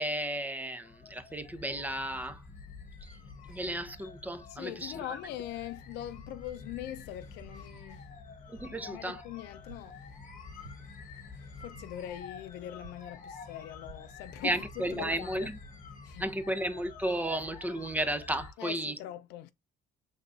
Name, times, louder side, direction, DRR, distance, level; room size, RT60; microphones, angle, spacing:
voice 1, 0.0-2.4 3.5-5.2 8.5-9.2 14.4-15.5 16.2-19.0, right 1 dB, 10° right, 0.6 m, -33 dB
sound 1, 0.8-18.5, left 4 dB, 50° left, 1.1 m, -48 dB
voice 2, 4.5-8.1 8.7-10.1 10.6-10.7 11.3-15.5 16.0-16.2 18.6-19.5, left 13 dB, 85° left, 0.5 m, -42 dB
sound 2, 8.6-8.9 9.7-10.0 10.6-11.0 11.6-11.9 12.8-13.2 13.9-14.2 14.7-14.8 15.1-15.2, right 3 dB, 65° right, 2.2 m, -52 dB
5.4 x 3.5 x 2.5 m
cardioid pair, 110°, 17 cm